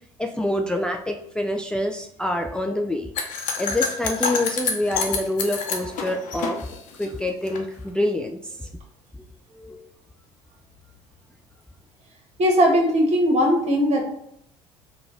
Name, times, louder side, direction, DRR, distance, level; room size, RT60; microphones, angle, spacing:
voice 1, 0.2-3.1 3.6-6.7 7.0-8.7 9.7-9.8, left 1 dB, 5° left, 3 dB, 0.3 m, -26 dB
sound 1, 3.2-7.6, left 5 dB, 65° left, 0.8 m, -28 dB
voice 2, 12.4-14.0, equal, 50° right, 0 dB, 1.3 m, -19 dB
3.9 x 2.3 x 3.7 m, 0.72 s
supercardioid pair, 75°, 14 cm